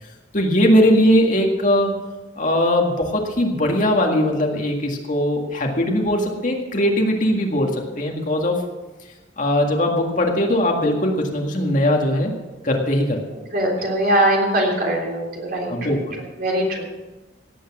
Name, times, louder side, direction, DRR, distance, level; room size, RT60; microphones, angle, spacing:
voice 1, 0.3-1.9 2.4-8.6 9.4-12.3 12.6-13.2 15.7-16.2, left 1 dB, 45° left, 1 dB, 1.9 m, -20 dB
voice 2, 13.5-16.0 16.4-16.9, right 1 dB, 50° right, -1 dB, 3.4 m, -21 dB
17.0 x 8.6 x 6.1 m, 1.1 s
head